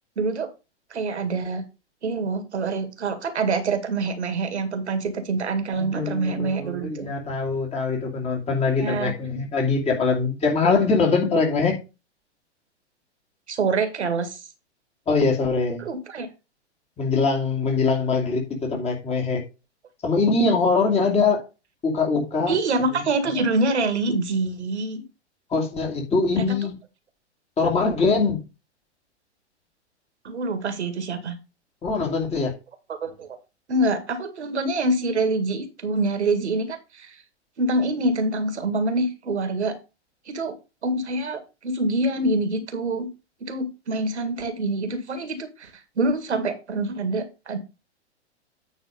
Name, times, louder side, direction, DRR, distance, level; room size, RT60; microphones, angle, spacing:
voice 1, 0.2-0.5 0.9-1.6 2.0-7.1 8.8-9.1 13.5-14.4 15.8-16.3 22.5-25.0 26.3-26.6 30.2-31.4 32.9-33.4 33.7-37.2 37.6-39.8 40.3-40.6 40.8-43.1 43.4-45.7 46.0-47.6, right 2 dB, 70° right, 2.0 m, -25 dB
voice 2, 5.7-11.8 15.1-15.8 17.0-19.4 20.0-21.4 21.8-22.6 22.9-23.0 25.5-26.7 27.6-28.4 31.8-32.5, left 4 dB, 20° left, 2.7 m, -23 dB
9.4 x 4.3 x 5.1 m
figure-of-eight pair, 110°, 35 cm